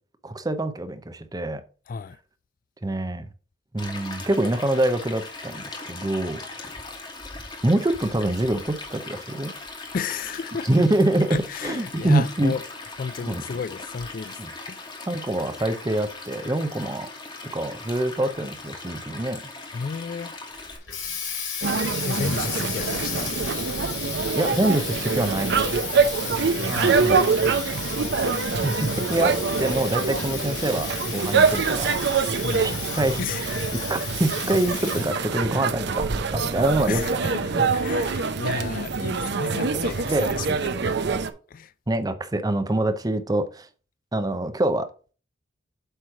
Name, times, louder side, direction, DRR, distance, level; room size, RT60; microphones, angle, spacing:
voice 1, 0.2-1.6 2.8-3.3 3.7-6.4 7.6-9.5 10.7-12.5 13.2-13.4 14.4-14.5 15.1-17.1 17.5-19.4 22.1-22.4 24.4-25.7 26.7-27.3 28.6-31.9 32.6-33.2 33.7-37.7 40.0-40.6 41.9-43.7 44.1-44.9, right 1 dB, 20° right, 0.6 m, -25 dB
voice 2, 1.9-2.2 9.9-10.7 11.3-12.6 13.0-14.4 14.7-14.9 19.7-20.3 22.0-23.3 26.7-27.1 32.4-32.8 33.2-33.4 36.9-40.7 41.5-41.7, left 5 dB, 45° left, 0.3 m, -32 dB
Stream, 3.8-20.8, left 3 dB, 25° left, 1.4 m, -39 dB
Water tap faucet, 20.6-35.3, left 6 dB, 70° left, 2.9 m, -34 dB
sound 1, 21.6-41.3, right 4 dB, 60° right, 0.6 m, -25 dB
8.0 x 3.2 x 5.8 m
head